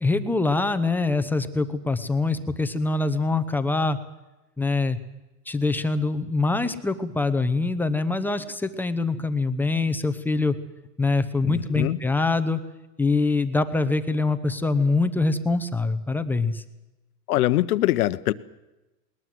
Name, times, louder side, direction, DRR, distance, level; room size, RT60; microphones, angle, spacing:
voice 1, 0.0-4.0 4.6-5.0 5.5-10.6 11.0-12.6 13.0-16.6, left 3 dB, 5° left, 9 dB, 0.9 m, -24 dB
voice 2, 11.5-12.0 17.3-18.3, left 15 dB, 65° left, 14 dB, 1.1 m, -23 dB
20.5 x 20.0 x 7.8 m, 1.0 s
hypercardioid pair, 135°, 48 cm